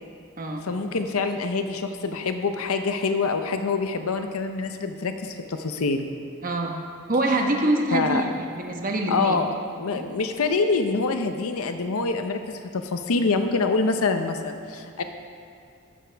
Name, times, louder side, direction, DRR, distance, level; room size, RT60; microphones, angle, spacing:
voice 1, 0.7-6.1 7.9-8.2 9.1-9.5 9.8-15.0, left 4 dB, 85° left, 7 dB, 0.7 m, -25 dB
voice 2, 6.4-6.8 7.1-9.4 9.9-10.0, right 1 dB, 40° right, 2 dB, 1.2 m, -25 dB
14.0 x 11.5 x 3.4 m, 2.3 s
head